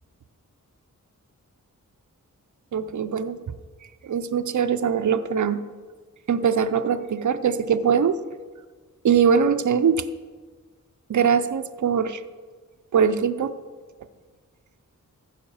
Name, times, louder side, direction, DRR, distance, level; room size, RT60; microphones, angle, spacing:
voice 1, 2.7-3.4 4.0-5.6 6.3-8.2 9.0-10.0 11.1-12.2 12.9-13.5, right 7 dB, 60° right, 11 dB, 0.6 m, -22 dB
14.5 x 5.1 x 7.1 m, 1.4 s
wide cardioid pair, 95°, 33 cm